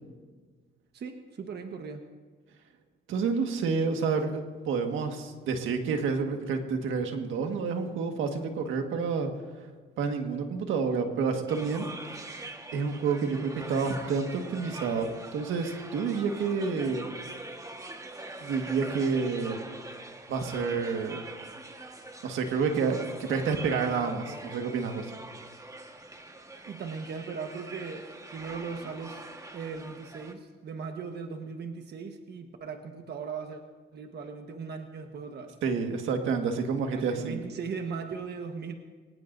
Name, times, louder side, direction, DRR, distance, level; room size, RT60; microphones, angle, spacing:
voice 1, 0.9-2.0 26.6-29.2 29.5-33.6 33.9-35.5 36.9-38.7, right 5 dB, 55° right, 5 dB, 1.3 m, -38 dB
voice 2, 3.1-9.3 10.0-11.9 12.2-12.4 12.7-17.0 18.4-19.6 20.3-21.2 22.2-23.0 23.3-25.1 35.6-37.4, right 5 dB, 85° right, 4 dB, 1.7 m, -29 dB
sound 1, 11.5-30.3, right 2 dB, 15° right, 1.5 m, -43 dB
23.5 x 19.0 x 2.7 m, 1.5 s
cardioid pair, 105°, 20 cm